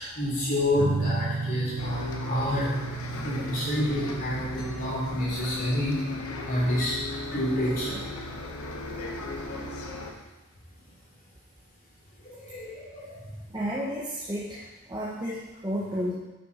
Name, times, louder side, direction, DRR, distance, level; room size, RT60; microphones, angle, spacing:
voice 1, 0.0-2.7 3.2-5.9 6.4-7.0 7.3-8.0 12.2-13.2, left 1 dB, 40° left, -7 dB, 3.5 m, -29 dB
sound 1, 0.8-8.4, right 3 dB, 80° right, 0.5 m, -35 dB
Bus, 1.8-10.1, left 2 dB, 85° left, 1.1 m, -36 dB
voice 2, 13.5-16.1, equal, 20° right, -6 dB, 0.9 m, -32 dB
10.0 x 6.1 x 4.2 m, 1.1 s
head